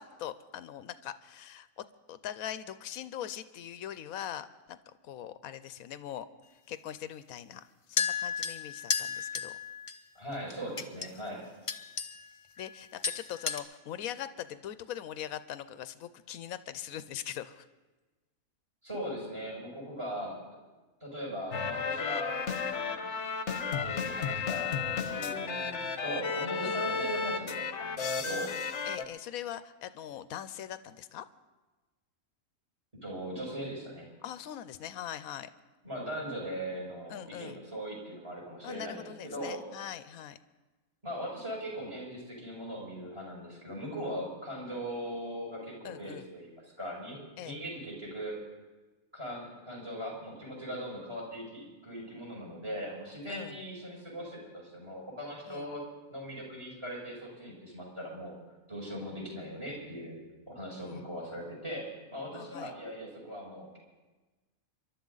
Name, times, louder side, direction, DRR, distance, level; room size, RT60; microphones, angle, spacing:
voice 1, 0.0-4.8 5.0-6.3 6.7-9.6 12.6-17.7 26.6-27.1 28.8-31.2 34.2-35.5 37.1-37.6 38.6-40.4 45.8-46.3 47.4-47.6 53.3-53.6 55.5-55.8 60.8-61.1 62.3-62.7, left 10 dB, 85° left, 13 dB, 1.1 m, -42 dB
sound 1, 8.0-10.0 10.5-11.1 11.7-12.3 12.6-12.8 13.0-13.6, left 6 dB, 35° left, 0.5 m, -33 dB
voice 2, 10.1-11.5 18.8-20.4 21.0-23.1 23.7-24.8 25.1-28.6 32.9-34.1 35.8-39.6 41.0-46.5 46.8-48.4 49.1-55.8 56.1-58.3 58.7-60.2 60.5-63.8, equal, 20° right, -3 dB, 5.8 m, -40 dB
sound 2, 21.5-29.0, left 5 dB, 55° left, 1.2 m, -33 dB
27.0 x 12.0 x 4.0 m, 1.2 s
omnidirectional pair, 1.5 m